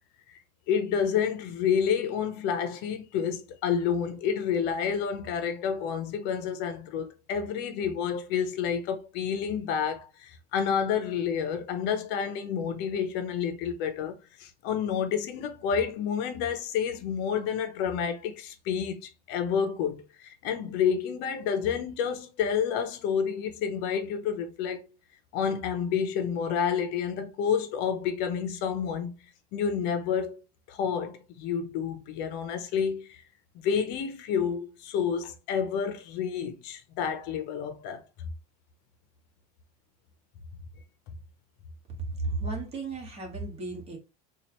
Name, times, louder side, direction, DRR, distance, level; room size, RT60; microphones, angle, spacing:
voice 1, 0.7-24.8 25.3-29.2 29.5-30.4 30.7-33.2 33.5-38.3, left 7 dB, 55° left, 0.7 m, -29 dB
voice 2, 41.9-44.0, right 3 dB, 30° right, 1.5 m, -34 dB
4.3 x 2.4 x 2.9 m
cardioid pair, 145°, 20 cm